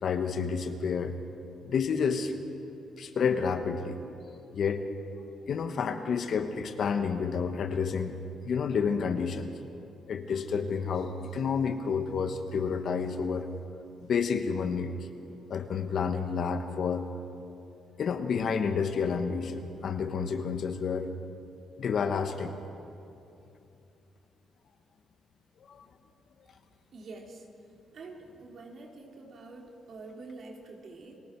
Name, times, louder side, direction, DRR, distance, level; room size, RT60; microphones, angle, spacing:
voice 1, 0.0-1.2 1.7-2.3 3.0-4.0 4.5-4.8 5.5-8.1 8.4-9.5 10.1-13.5 14.1-14.9 15.5-17.1 18.0-21.1 21.8-22.6 25.7-25.8, left 6 dB, 60° left, 7 dB, 1.4 m, -29 dB
voice 2, 26.9-27.5 27.9-31.2, right 3 dB, 55° right, 0 dB, 3.4 m, -46 dB
30.0 x 19.5 x 4.7 m, 2.7 s
cardioid pair, 90°, 0 cm